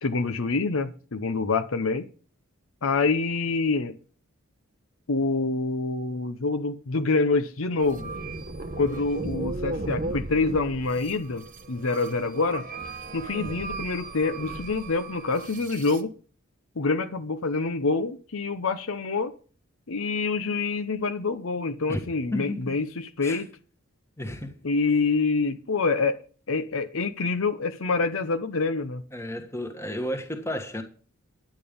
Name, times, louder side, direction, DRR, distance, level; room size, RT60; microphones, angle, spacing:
voice 1, 0.0-2.1 2.8-3.9 5.1-8.1 8.8-12.7 13.1-16.1 16.8-19.3 19.9-23.5 24.6-26.2 26.5-29.0, left 3 dB, 65° left, 0.8 m, -26 dB
sound 1, 7.8-16.0, right 2 dB, 35° right, 1.0 m, -36 dB
voice 2, 22.3-22.7 23.2-23.4 24.2-24.5 29.1-30.8, left 1 dB, 10° left, 1.5 m, -32 dB
10.5 x 9.1 x 5.2 m
head